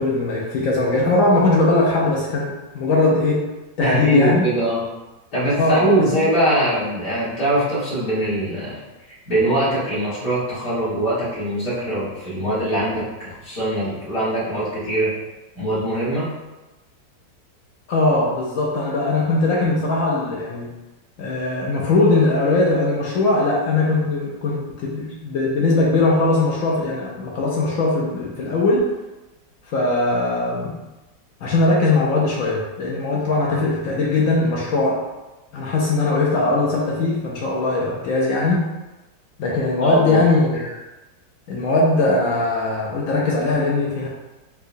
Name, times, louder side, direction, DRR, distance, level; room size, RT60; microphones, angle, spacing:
voice 1, 0.0-3.5 3.8-4.4 5.6-6.3 17.9-20.7 21.2-28.9 29.7-30.8 31.4-35.0 35.5-38.7 39.4-40.8 41.5-44.1, left 2 dB, 80° left, -3 dB, 0.7 m, -20 dB
voice 2, 3.8-4.8 5.3-8.8 9.1-15.1 15.6-16.3 39.8-40.3, right 1 dB, 55° left, -12 dB, 1.7 m, -22 dB
4.6 x 2.2 x 2.5 m, 1.1 s
omnidirectional pair, 2.0 m